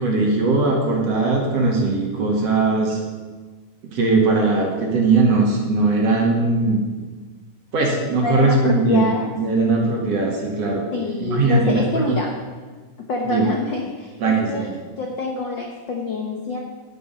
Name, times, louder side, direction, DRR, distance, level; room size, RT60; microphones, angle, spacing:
voice 1, 0.0-3.0 3.9-6.8 7.7-9.1 9.4-10.8 11.2-12.2 13.2-13.5 14.2-14.7, right 3 dB, 50° right, -1 dB, 2.6 m, -19 dB
voice 2, 8.2-9.3 10.9-12.3 13.1-14.7 15.0-16.6, left 2 dB, 85° left, 1 dB, 1.0 m, -26 dB
11.0 x 10.0 x 5.5 m, 1.4 s
omnidirectional pair, 3.9 m